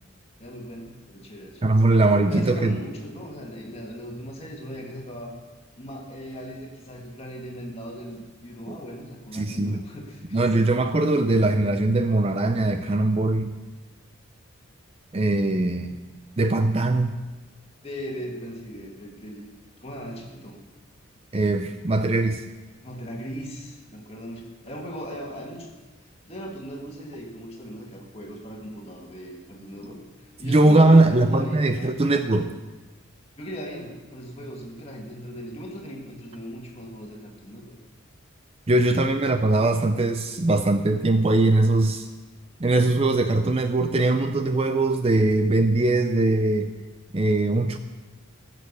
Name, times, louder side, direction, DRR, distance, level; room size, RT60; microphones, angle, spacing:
voice 1, 0.4-1.9 2.2-5.3 5.8-10.9 17.8-19.5 19.8-20.6 22.8-25.7 26.0-32.2 33.4-37.8 38.8-39.2, equal, 30° left, 0 dB, 2.0 m, -38 dB
voice 2, 1.6-2.8 8.7-8.8 9.3-9.8 10.3-13.5 15.1-16.0 16.4-17.2 21.3-22.4 30.4-32.5 38.7-42.1 42.6-46.7 47.1-47.8, right 2 dB, 30° right, 8 dB, 0.5 m, -21 dB
15.0 x 6.8 x 6.8 m, 1.2 s
head